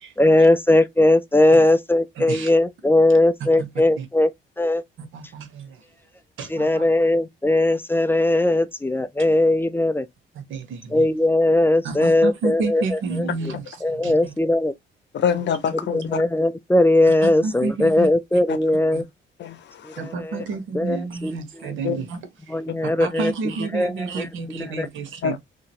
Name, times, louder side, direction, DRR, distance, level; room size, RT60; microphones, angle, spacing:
voice 1, 0.2-4.3 4.6-4.8 6.5-10.1 10.9-13.3 13.8-14.7 15.7-19.0 20.0-20.4 20.7-21.0 21.2-21.3 22.5-23.3 23.7-24.1 24.8-24.9, left 1 dB, 10° left, 0.5 m, -19 dB
voice 2, 2.2-2.5 3.6-3.7 4.0-4.1 5.0-5.8 6.4-6.9 10.3-11.1 11.8-14.3 17.2-18.4 18.9-19.0 20.0-25.4, right 4 dB, 80° right, 1.1 m, -30 dB
voice 3, 15.1-16.2 18.5-18.6 19.4-20.0 21.8-22.0 22.7-22.8 25.2-25.4, left 7 dB, 65° left, 0.8 m, -25 dB
3.0 x 2.8 x 2.8 m
cardioid pair, 90°, 20 cm